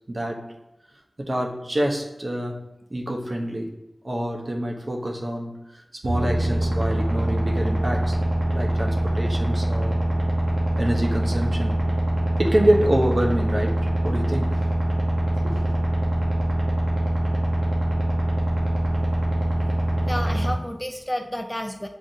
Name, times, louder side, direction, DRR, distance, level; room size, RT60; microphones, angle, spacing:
voice 1, 0.1-0.5 1.2-2.6 2.9-3.8 4.0-5.6 6.0-8.2 8.5-10.0 10.8-11.8 12.4-14.6 15.4-15.6, right 1 dB, 50° right, 0 dB, 0.7 m, -26 dB
sound 1, 6.0-20.5, right 1 dB, 80° right, 0.9 m, -23 dB
voice 2, 20.1-21.9, equal, 10° left, 5 dB, 0.3 m, -31 dB
7.4 x 2.6 x 2.6 m, 0.88 s
wide cardioid pair, 60°, 0 cm